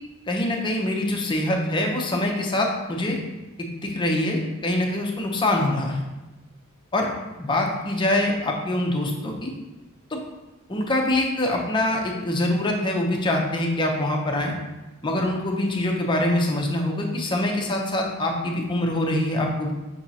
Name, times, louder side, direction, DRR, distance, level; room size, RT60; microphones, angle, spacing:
voice 1, 0.3-3.2 3.6-6.0 6.9-7.1 7.4-9.5 10.1-10.2 10.7-14.5 15.0-19.7, left 1 dB, 20° left, 1 dB, 0.6 m, -24 dB
6.0 x 3.0 x 2.7 m, 1.1 s
head